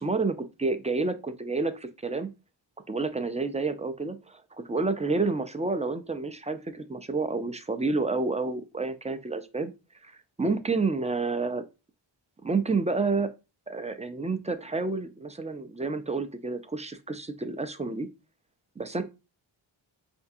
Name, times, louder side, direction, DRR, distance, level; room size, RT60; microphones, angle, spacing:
voice 1, 0.0-2.3 2.9-9.7 10.0-11.6 12.4-13.3 13.7-18.1 18.8-19.0, right 3 dB, 15° right, 0.3 m, -29 dB
4.8 x 3.5 x 2.6 m
wide cardioid pair, 135°, 47 cm